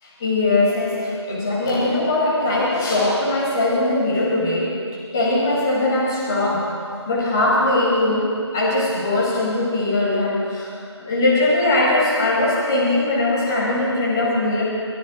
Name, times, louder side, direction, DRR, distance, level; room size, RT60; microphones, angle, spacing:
voice 1, 0.2-4.7 5.1-6.7 7.1-10.7 11.0-14.6, left 2 dB, 5° left, -8 dB, 1.3 m, -20 dB
23.0 x 13.0 x 3.9 m, 2.4 s
figure-of-eight pair, 170°, 15 cm